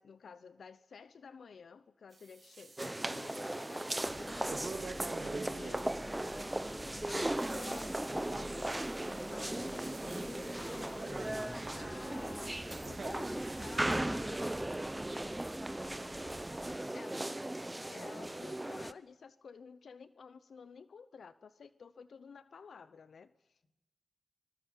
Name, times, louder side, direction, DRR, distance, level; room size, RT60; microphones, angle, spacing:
voice 1, 0.0-5.9 7.1-11.3 11.7-14.5 16.9-17.2 17.9-23.6, left 5 dB, 80° left, 0.8 m, -52 dB
sound 1, 2.1-2.9 3.2-5.8 6.9-13.9, right 3 dB, 60° right, 2.3 m, -48 dB
sound 2, 2.8-18.9, right 1 dB, 20° right, 0.9 m, -37 dB
sound 3, 4.0-16.8, equal, ahead, 1.1 m, -48 dB
voice 2, 5.5-5.6, left 1 dB, 55° left, 7.8 m, -64 dB
24.5 x 21.0 x 7.3 m
cardioid pair, 45°, 0 cm